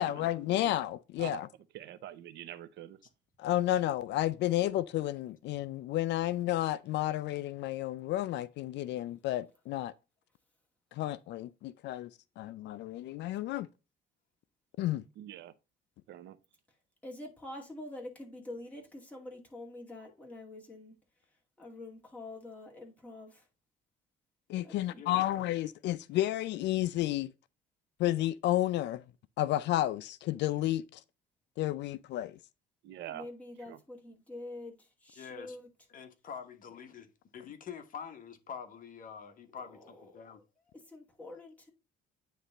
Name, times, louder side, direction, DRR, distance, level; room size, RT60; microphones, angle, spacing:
voice 1, 0.0-1.5 3.4-9.9 10.9-12.1 12.4-13.7 14.8-15.0 24.5-27.3 28.0-29.0 29.4-31.0 31.6-32.4, left 14 dB, 70° left, 0.5 m, -31 dB
voice 2, 1.7-3.0 15.2-15.5 16.1-16.4 32.8-33.3 33.7-33.8, right 12 dB, 70° right, 0.7 m, -44 dB
voice 3, 17.0-20.9 21.6-23.5 24.6-25.0 33.1-35.7 39.4-40.4 40.9-41.7, left 2 dB, 5° left, 2.4 m, -46 dB
voice 4, 35.2-35.6 35.9-40.4, left 7 dB, 45° left, 1.2 m, -46 dB
9.4 x 3.3 x 4.0 m
cardioid pair, 140°, 19 cm